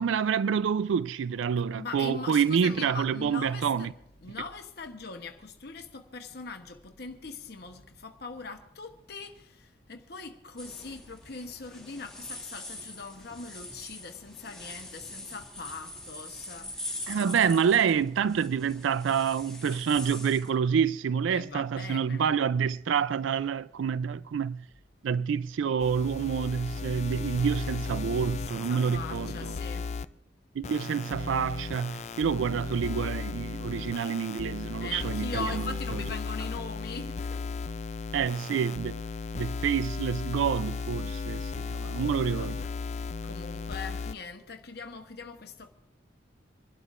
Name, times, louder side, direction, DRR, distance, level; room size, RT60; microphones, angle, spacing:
voice 1, 0.0-3.9 17.1-24.6 25.0-29.5 30.6-35.6 35.9-36.0 38.1-39.0 39.3-42.6, right 7 dB, 85° right, 0.4 m, -28 dB
voice 2, 1.7-3.9 4.2-16.9 17.1-17.5 21.3-22.3 28.5-29.9 34.8-37.7 41.9-45.7, left 4 dB, 55° left, 1.0 m, -41 dB
sound 1, 10.6-20.5, left 2 dB, 5° left, 1.7 m, -43 dB
sound 2, 25.8-30.1 30.6-44.1, left 4 dB, 35° left, 0.4 m, -35 dB
26.5 x 12.0 x 2.5 m
head